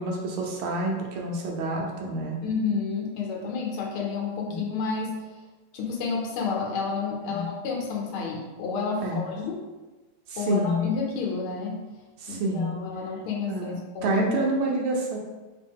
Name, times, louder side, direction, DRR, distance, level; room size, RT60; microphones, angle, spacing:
voice 1, 0.0-2.4 4.5-4.6 7.3-7.5 9.0-9.2 10.3-10.9 12.2-12.8 13.5-15.2, right 1 dB, 75° right, 0 dB, 1.6 m, -28 dB
voice 2, 2.4-5.1 5.7-9.6 10.4-11.8 12.3-14.2, left 5 dB, 75° left, 0 dB, 1.6 m, -30 dB
3.6 x 3.0 x 3.5 m, 1.2 s
omnidirectional pair, 2.4 m